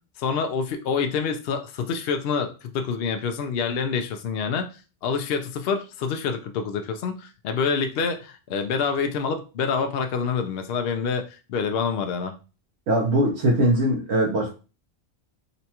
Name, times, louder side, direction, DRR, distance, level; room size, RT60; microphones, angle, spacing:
voice 1, 0.2-4.7 5.0-12.3, left 5 dB, 70° left, 7 dB, 0.7 m, -27 dB
voice 2, 12.9-14.5, right 1 dB, 80° right, -1 dB, 1.0 m, -21 dB
3.9 x 2.3 x 2.8 m, 0.33 s
omnidirectional pair, 1.1 m